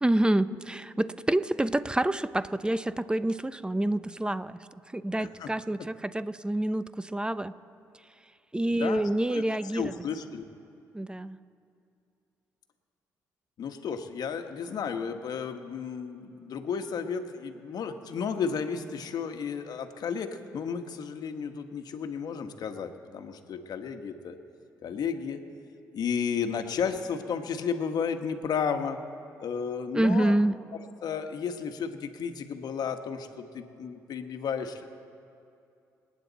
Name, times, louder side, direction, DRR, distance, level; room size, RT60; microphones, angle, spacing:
voice 1, 0.0-4.6 4.9-7.5 8.5-9.9 10.9-11.4 29.9-30.5, right 1 dB, 10° right, 15 dB, 0.7 m, -27 dB
voice 2, 5.2-5.5 8.7-9.0 9.3-10.5 13.6-24.4 24.8-25.4 25.9-29.0 29.4-30.4 31.0-34.9, left 6 dB, 65° left, 7 dB, 1.3 m, -33 dB
27.5 x 9.4 x 4.1 m, 2.6 s
supercardioid pair, 55°, 7 cm